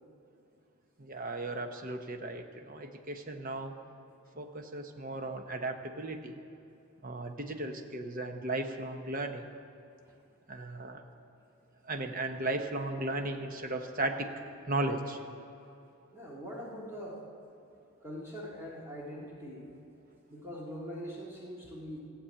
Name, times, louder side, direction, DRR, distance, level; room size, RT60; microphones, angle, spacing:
voice 1, 1.0-3.7 4.4-6.4 7.0-9.5 10.5-11.0 11.9-14.3 14.7-15.2, right 2 dB, 40° right, 5 dB, 0.9 m, -36 dB
voice 2, 16.1-17.2 18.0-19.7 20.3-22.0, equal, 10° right, -5 dB, 2.1 m, -42 dB
15.5 x 7.2 x 8.8 m, 2.8 s
head